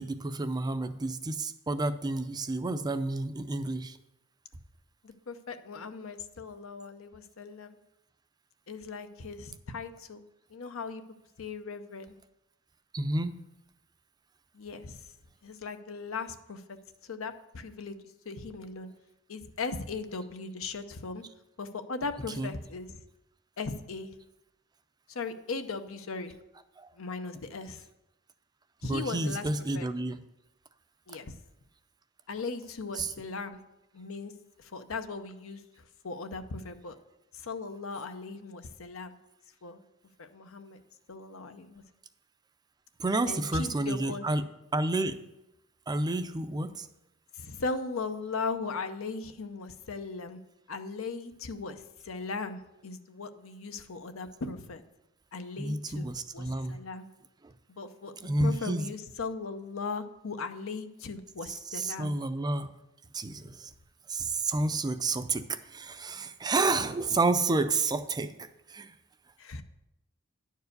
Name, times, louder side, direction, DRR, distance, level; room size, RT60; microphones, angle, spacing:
voice 1, 0.0-4.0 12.9-13.4 22.4-22.5 26.8-26.9 28.8-30.2 33.0-33.1 43.0-44.5 44.7-45.2 45.9-46.9 55.6-56.7 58.2-58.8 61.5-62.7 63.1-63.7 64.1-68.9, right 2 dB, 20° right, 11 dB, 0.4 m, -30 dB
voice 2, 5.0-7.8 8.7-10.2 10.5-11.0 11.4-12.2 14.5-15.0 15.4-16.8 17.0-18.0 18.3-18.9 19.3-21.2 21.6-23.0 23.6-24.1 25.1-26.3 27.0-27.8 28.8-29.5 29.7-29.9 31.1-31.3 32.3-33.6 33.9-34.3 34.6-35.6 36.0-37.0 37.3-39.2 39.6-39.8 40.2-40.8 41.1-41.8 43.3-44.3 47.3-50.4 50.7-54.8 55.3-57.1 57.8-62.1 69.4-69.6, left 4 dB, 75° left, 9 dB, 0.7 m, -38 dB
10.5 x 4.7 x 6.6 m, 0.91 s
head